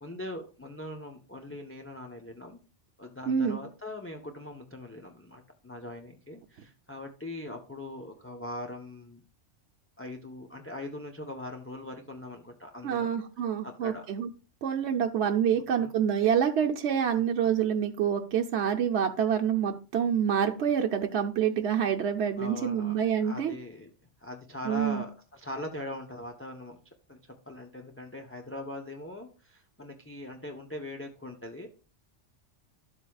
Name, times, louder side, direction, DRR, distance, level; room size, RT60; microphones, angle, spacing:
voice 1, 0.0-2.6 3.0-9.2 10.0-13.2 13.6-14.1 15.8-15.9 17.1-17.3 22.4-23.9 24.2-26.8 27.1-27.2 27.5-31.7, left 1 dB, 10° left, 2 dB, 0.8 m, -41 dB
voice 2, 3.3-3.6 12.8-14.3 14.6-23.6 24.6-25.0, right 8 dB, 70° right, 4 dB, 1.0 m, -27 dB
11.5 x 8.0 x 2.3 m, 0.35 s
omnidirectional pair, 1.2 m